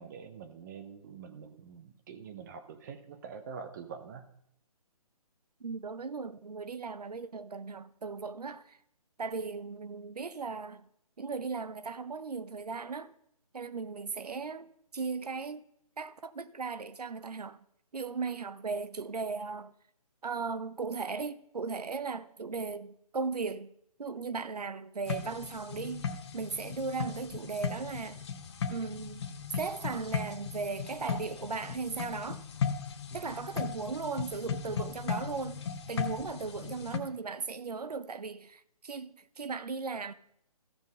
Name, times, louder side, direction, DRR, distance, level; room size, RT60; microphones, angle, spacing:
voice 1, 0.0-4.3 33.1-33.3, right 6 dB, 30° right, 0.8 m, -45 dB
voice 2, 5.6-8.8 9.2-10.9 11.2-13.1 13.5-15.6 16.0-17.6 17.9-19.7 20.2-23.7 24.0-26.1 26.3-28.2 28.7-29.2 29.6-32.4 33.1-40.1, right 4 dB, 85° right, 0.8 m, -37 dB
sound 1, 25.1-37.0, left 6 dB, 45° left, 1.1 m, -37 dB
14.5 x 5.8 x 5.5 m
figure-of-eight pair, 150°, 20 cm